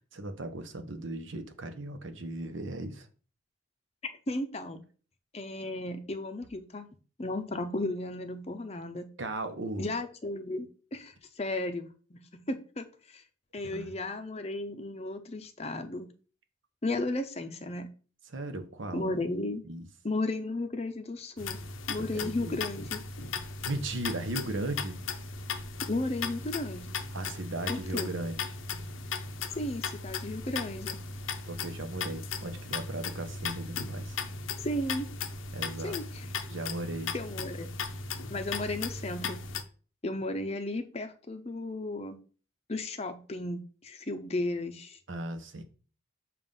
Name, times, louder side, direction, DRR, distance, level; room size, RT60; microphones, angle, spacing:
voice 1, 0.1-3.1 9.2-9.9 13.7-13.9 18.3-19.1 19.6-19.9 22.0-22.6 23.4-25.0 27.1-28.5 31.5-34.2 35.5-36.0 36.5-37.1 45.1-45.6, right 2 dB, 75° right, 0.9 m, -37 dB
voice 2, 4.0-4.8 5.3-6.9 7.2-9.1 9.8-13.2 13.5-16.1 16.8-17.9 18.9-19.6 20.0-21.6 21.9-23.0 25.9-26.9 27.7-28.1 29.5-31.0 34.6-35.1 35.8-36.1 37.1-37.7 38.3-39.4 40.0-42.2 42.7-45.0, left 2 dB, 30° left, 0.6 m, -34 dB
sound 1, 21.4-39.6, left 5 dB, 80° left, 0.6 m, -37 dB
7.0 x 2.5 x 5.4 m
head